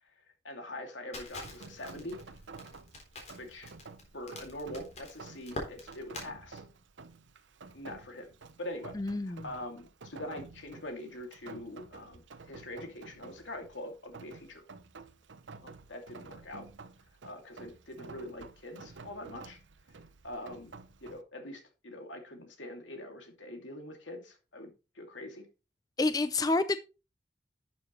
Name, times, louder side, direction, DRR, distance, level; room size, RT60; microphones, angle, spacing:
voice 1, 0.4-2.2 3.4-3.7 4.1-6.6 7.7-9.0 9.3-14.6 15.6-16.7 17.2-19.6 20.2-20.7 21.0-25.5, left 1 dB, 80° left, 4 dB, 2.6 m, -43 dB
Crackle, 1.1-6.3, left 1 dB, 35° left, 3.7 m, -44 dB
Rain, 1.4-21.2, right 4 dB, 80° right, 0.8 m, -51 dB
voice 2, 8.9-9.5 26.0-26.8, left 2 dB, 20° left, 12 dB, 0.4 m, -28 dB
11.5 x 7.3 x 3.2 m, 0.31 s
head